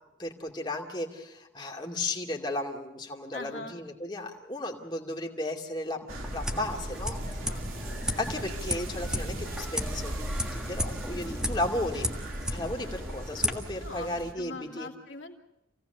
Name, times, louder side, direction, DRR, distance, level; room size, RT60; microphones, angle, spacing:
voice 1, 0.2-7.2 8.2-12.1 12.5-14.9, left 1 dB, 20° left, 0 dB, 2.6 m, -34 dB
voice 2, 3.3-3.8 7.2-8.1 13.8-15.3, left 3 dB, 65° left, 2 dB, 2.7 m, -43 dB
sound 1, 6.1-13.5, equal, 5° right, 1.7 m, -34 dB
windy autumn, 6.1-14.3, right 1 dB, 85° right, 2.9 m, -40 dB
28.0 x 17.5 x 6.8 m, 0.93 s
head